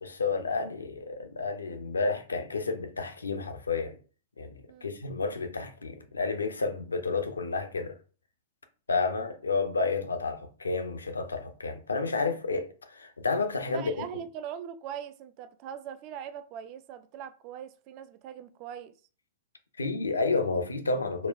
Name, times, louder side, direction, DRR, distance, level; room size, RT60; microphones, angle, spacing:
voice 1, 0.0-4.0 4.4-8.0 8.9-14.1 19.8-21.3, left 4 dB, 75° left, 0.4 m, -30 dB
voice 2, 13.7-18.9, right 9 dB, 40° right, 0.3 m, -41 dB
3.8 x 2.1 x 2.3 m
figure-of-eight pair, 100°, 0 cm